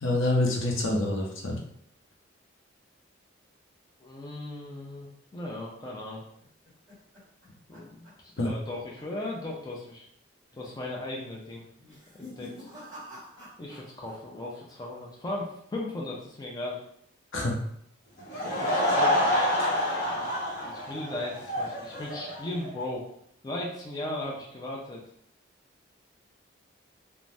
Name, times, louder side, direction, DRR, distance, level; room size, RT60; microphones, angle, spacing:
voice 1, 0.0-1.6 8.4-8.5 17.3-17.5, left 2 dB, 75° left, 1 dB, 0.6 m, -26 dB
voice 2, 4.0-6.2 7.7-10.0 10.5-11.6 12.1-12.5 13.6-16.8 18.4-19.3 20.1-20.3 20.6-23.0 23.4-25.0, left 1 dB, 20° left, -3 dB, 0.4 m, -37 dB
sound 1, 6.2-8.7 9.0-9.3 9.6-9.7 10.5-10.9 11.7-14.2 14.4-15.0, equal, 15° right, 1.3 m, -48 dB
Laughter / Crowd, 18.2-22.7, left 1 dB, 50° left, 0.8 m, -27 dB
2.6 x 2.0 x 3.2 m, 0.71 s
head